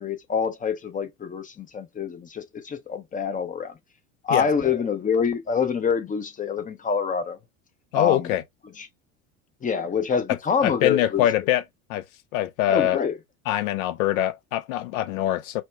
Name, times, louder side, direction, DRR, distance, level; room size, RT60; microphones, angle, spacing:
voice 1, 0.0-3.7 4.2-7.4 7.9-8.3 8.8-8.9 9.6-11.3 12.7-13.2, left 6 dB, 20° left, 0.6 m, -26 dB
voice 2, 7.9-8.4 10.3-11.6 11.9-12.0 12.3-13.0 13.5-15.6, left 13 dB, 70° left, 0.6 m, -24 dB
4.3 x 2.1 x 2.2 m
hypercardioid pair, 75°, 44 cm